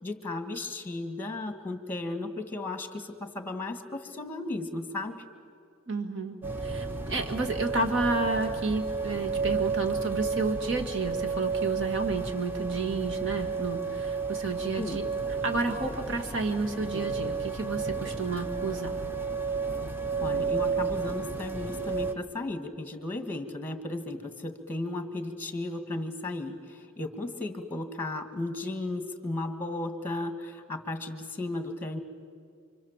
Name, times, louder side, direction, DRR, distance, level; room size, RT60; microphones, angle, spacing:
voice 1, 0.0-5.2 14.8-15.0 20.2-32.0, left 2 dB, 10° left, 7 dB, 1.8 m, -35 dB
voice 2, 5.9-6.4 6.6-15.0 15.4-19.0, right 3 dB, 60° right, 3 dB, 2.4 m, -31 dB
sound 1, 6.4-22.1, right 5 dB, 10° right, 1.1 m, -32 dB
29.0 x 25.0 x 7.5 m, 2.3 s
head